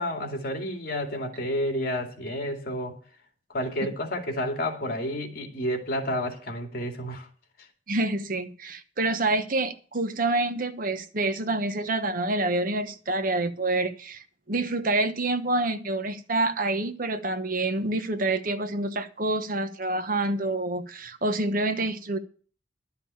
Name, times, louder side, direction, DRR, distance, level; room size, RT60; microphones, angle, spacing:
voice 1, 0.0-3.0 3.5-7.3, equal, 55° left, 2.5 m, -30 dB
voice 2, 7.9-22.2, right 2 dB, 50° right, 1.0 m, -27 dB
12.0 x 5.7 x 8.5 m
head